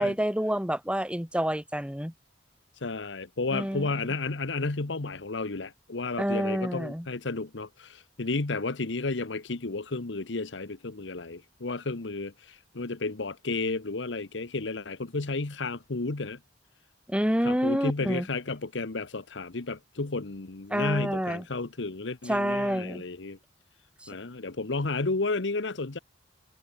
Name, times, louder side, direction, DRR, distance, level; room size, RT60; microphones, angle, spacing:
voice 1, 0.0-2.1 3.5-3.9 6.2-7.1 17.1-18.3 20.7-21.4 22.3-23.0, equal, 5° right, 4.2 m, -28 dB
voice 2, 2.8-16.4 17.4-23.4 24.1-26.0, left 3 dB, 70° left, 1.1 m, -32 dB
head